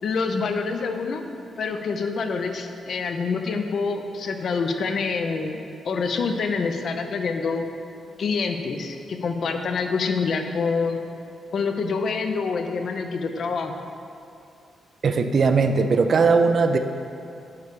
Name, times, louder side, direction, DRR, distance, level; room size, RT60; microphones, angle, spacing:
voice 1, 0.0-1.2 1.6-7.7 8.2-11.0 11.5-13.7, left 4 dB, 55° left, 6 dB, 0.6 m, -26 dB
voice 2, 15.0-16.8, right 4 dB, 45° right, 7 dB, 0.4 m, -19 dB
9.5 x 3.2 x 6.7 m, 2.6 s
cardioid pair, 135°, 0 cm